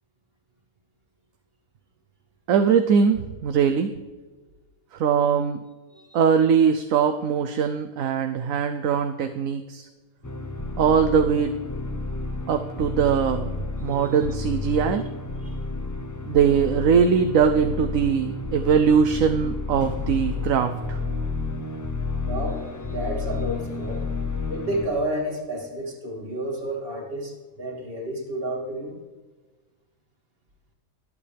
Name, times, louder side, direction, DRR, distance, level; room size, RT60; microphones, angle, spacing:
voice 1, 2.5-3.9 5.0-5.6 6.1-9.9 10.8-11.6 12.5-13.5 13.8-15.0 16.3-21.0, right 7 dB, 70° right, 7 dB, 1.1 m, -21 dB
sound 1, 10.2-24.9, left 3 dB, 20° left, 0.5 m, -31 dB
voice 2, 13.8-14.3 15.4-15.6 22.3-24.1 24.5-29.0, right 1 dB, 40° right, -1 dB, 2.9 m, -31 dB
23.5 x 8.7 x 3.4 m, 1.3 s
omnidirectional pair, 1.6 m